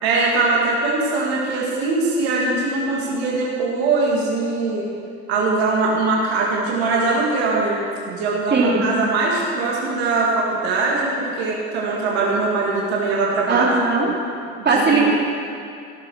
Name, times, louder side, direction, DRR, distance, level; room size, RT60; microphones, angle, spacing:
voice 1, 0.0-4.9 5.3-13.7 14.7-15.1, right 3 dB, 90° right, -4 dB, 2.1 m, -21 dB
voice 2, 8.5-8.9 13.5-14.1 14.6-15.2, right 3 dB, 35° right, -3 dB, 3.3 m, -18 dB
16.0 x 6.6 x 6.2 m, 2.5 s
supercardioid pair, 80°, 31 cm